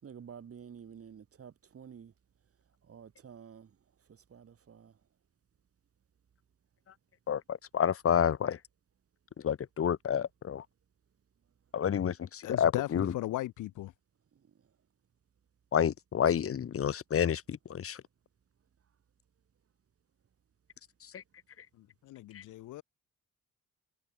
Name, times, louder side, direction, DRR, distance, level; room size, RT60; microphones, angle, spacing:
voice 1, 0.0-2.1 2.9-3.7 4.1-4.9, right 7 dB, 50° right, 5.1 m, -50 dB
voice 2, 7.3-8.6 9.4-10.6 11.7-13.1 15.7-18.0 21.0-21.2 22.3-22.4, left 8 dB, 50° left, 1.4 m, -29 dB
voice 3, 12.4-13.9 21.7-22.8, left 16 dB, 90° left, 4.4 m, -37 dB
cardioid pair, 90°, 30 cm